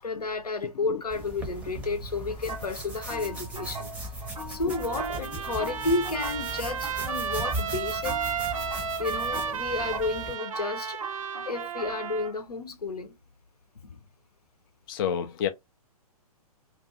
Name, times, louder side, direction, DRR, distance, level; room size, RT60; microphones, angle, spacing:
voice 1, 0.0-3.9 4.5-8.2 9.0-11.0 11.4-13.2 13.8-14.0, left 3 dB, 80° left, 0.7 m, -31 dB
sound 1, 1.1-10.4, right 1 dB, 5° right, 0.6 m, -38 dB
sound 2, 2.5-12.4, right 1 dB, 90° right, 1.0 m, -42 dB
Trumpet, 4.7-12.3, right 7 dB, 60° right, 0.5 m, -33 dB
voice 2, 14.9-15.5, left 8 dB, 35° left, 0.4 m, -28 dB
2.5 x 2.2 x 2.5 m
figure-of-eight pair, 115°, 20 cm